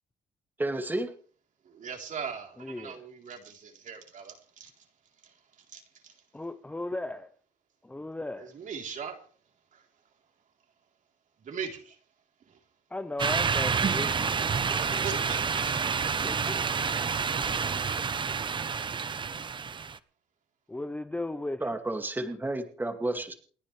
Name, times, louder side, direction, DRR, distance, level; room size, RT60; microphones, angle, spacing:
voice 1, 0.6-1.1 21.6-23.3, right 2 dB, 10° right, 2.3 m, -31 dB
voice 2, 1.6-4.9 5.2-6.3 8.4-9.3 9.7-9.9 11.4-12.0 12.4-12.6 14.8-16.3 19.6-19.8, right 6 dB, 50° right, 3.7 m, -41 dB
voice 3, 2.6-2.9 6.3-7.3 7.8-8.5 12.9-15.0 16.2-16.6 20.7-21.6, left 2 dB, 10° left, 0.8 m, -36 dB
sound 1, 13.2-20.0, right 6 dB, 30° right, 0.8 m, -29 dB
29.5 x 10.0 x 3.4 m
cardioid pair, 110°, 17 cm